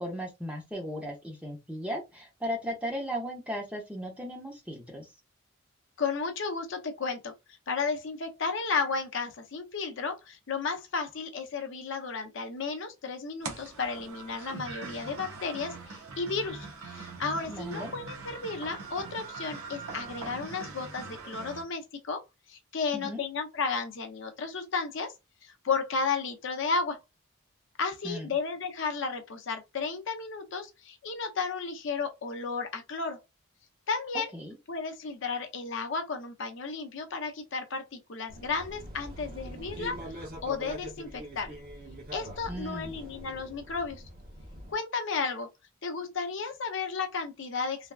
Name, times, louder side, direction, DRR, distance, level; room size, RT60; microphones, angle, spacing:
voice 1, 0.0-5.1 17.5-17.9 22.9-23.2 28.0-28.3 34.3-34.5 42.5-42.9, equal, 5° right, 0.7 m, -36 dB
voice 2, 6.0-7.3 7.7-22.2 22.5-25.1 25.4-27.0 27.8-33.2 33.9-34.3 34.7-41.6 42.1-44.0 44.7-45.5 45.8-47.9, left 4 dB, 60° left, 0.5 m, -33 dB
sound 1, 13.4-21.6, right 4 dB, 90° right, 0.9 m, -42 dB
sound 2, 38.3-44.8, equal, 40° right, 0.8 m, -43 dB
3.3 x 2.2 x 2.3 m
head